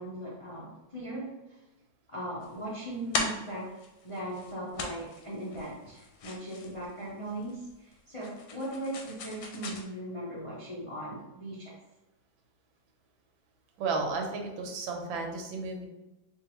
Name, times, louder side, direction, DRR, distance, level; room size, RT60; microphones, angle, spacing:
voice 1, 0.0-1.6 2.1-3.7 4.0-11.8, right 1 dB, 50° left, -7 dB, 0.3 m, -39 dB
sound 1, 2.4-9.8, left 3 dB, 90° left, 1.4 m, -39 dB
voice 2, 13.8-15.9, right 3 dB, 90° right, 2 dB, 1.5 m, -33 dB
4.6 x 2.5 x 2.9 m, 1.0 s
omnidirectional pair, 2.1 m